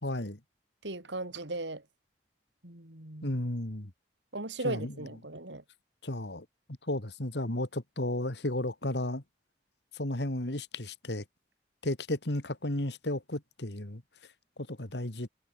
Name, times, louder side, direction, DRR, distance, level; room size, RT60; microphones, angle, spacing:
voice 1, 0.0-0.4 3.2-3.9 4.6-4.9 6.0-6.5 6.9-9.2 9.9-11.2 11.8-14.0 14.7-15.3, left 1 dB, 70° left, 2.6 m, -33 dB
voice 2, 0.8-1.8 2.6-3.3 4.3-5.6, right 2 dB, 80° right, 4.4 m, -37 dB
head